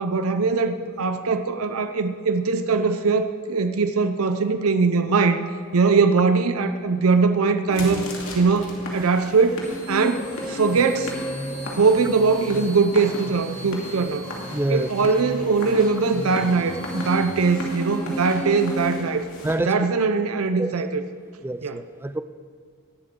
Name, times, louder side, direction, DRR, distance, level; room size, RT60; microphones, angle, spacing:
voice 1, 0.0-5.4 5.7-8.1 8.3-11.1 11.8-14.3 14.7-19.3 19.7-21.0 21.6-21.8, right 4 dB, 85° right, 9 dB, 0.6 m, -21 dB
sound 1, 7.7-19.6, left 1 dB, 75° left, 2.5 m, -37 dB
sound 2, 9.6-18.8, equal, 10° left, 3.0 m, -34 dB
voice 2, 14.5-14.9 19.4-19.7 20.6-20.7 21.4-22.2, right 1 dB, 10° right, 12 dB, 0.4 m, -26 dB
18.5 x 11.5 x 3.7 m, 2.2 s
head